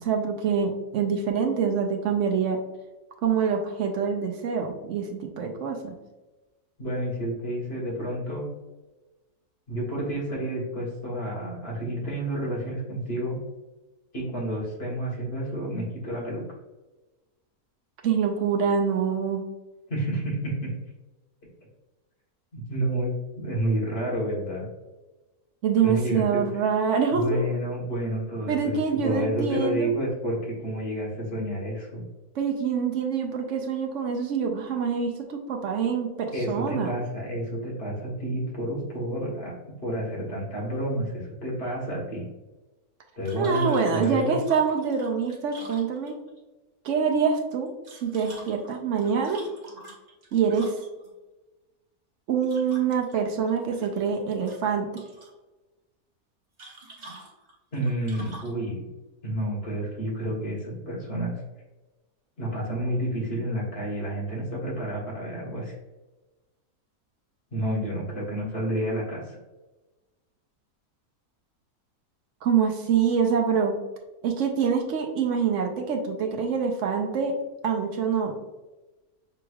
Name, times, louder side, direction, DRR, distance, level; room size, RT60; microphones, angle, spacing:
voice 1, 0.0-2.6 3.2-6.0 18.0-19.4 25.6-27.4 28.5-29.9 32.3-36.9 43.4-46.2 46.8-47.7 48.0-49.4 50.3-50.8 52.3-54.9 72.4-73.7 74.2-77.3 77.6-78.4, right 6 dB, 65° right, 2 dB, 0.8 m, -25 dB
voice 2, 6.8-8.5 9.7-13.4 14.1-16.4 19.9-20.7 22.5-23.1 23.4-24.7 25.8-26.4 27.1-32.0 36.3-42.3 43.2-44.4 57.7-58.9 59.2-61.3 62.4-65.7 67.5-69.4, right 1 dB, 45° left, -4 dB, 1.4 m, -30 dB
sound 1, 43.2-46.4 47.7-51.1 52.4-53.1 53.5-54.2 54.4-55.3 56.6-58.6, right 2 dB, 35° right, 0.8 m, -46 dB
6.0 x 3.1 x 2.3 m, 1.1 s
omnidirectional pair, 1.6 m